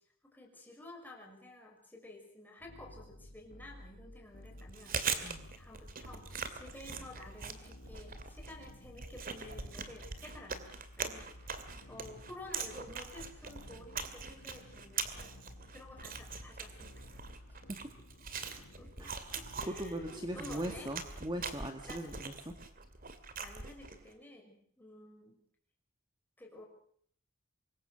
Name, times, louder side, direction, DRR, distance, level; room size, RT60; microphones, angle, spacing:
voice 1, 0.2-5.0 5.6-10.6 11.0-11.5 11.9-15.4 15.7-17.6 18.6-20.9 21.8-22.1 23.4-25.4 26.4-26.7, left 2 dB, 10° left, 0 dB, 6.1 m, -52 dB
sound 1, 2.6-21.1, left 1 dB, 65° left, 1.9 m, -55 dB
Chewing mastication, 4.6-24.1, right 5 dB, 45° right, 2.5 m, -42 dB
voice 2, 19.7-22.5, right 1 dB, 20° right, 5 dB, 1.9 m, -39 dB
25.5 x 22.0 x 6.4 m, 0.62 s
head